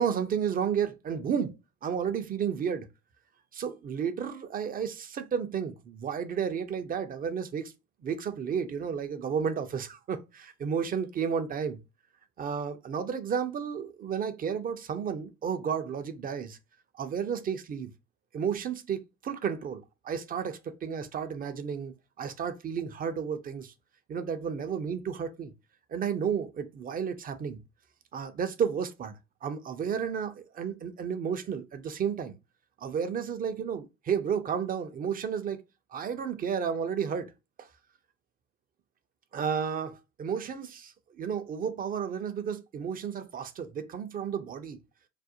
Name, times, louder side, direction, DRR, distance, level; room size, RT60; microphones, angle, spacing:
voice 1, 0.0-2.9 3.5-7.7 8.0-11.8 12.4-16.6 17.0-17.9 18.3-23.7 24.1-25.5 25.9-27.6 28.1-29.1 29.4-32.3 32.8-35.6 35.9-37.3 37.6-37.7 39.3-44.8, right 7 dB, 25° right, 0.4 m, -32 dB
2.4 x 2.0 x 2.7 m
hypercardioid pair, 65°, 35 cm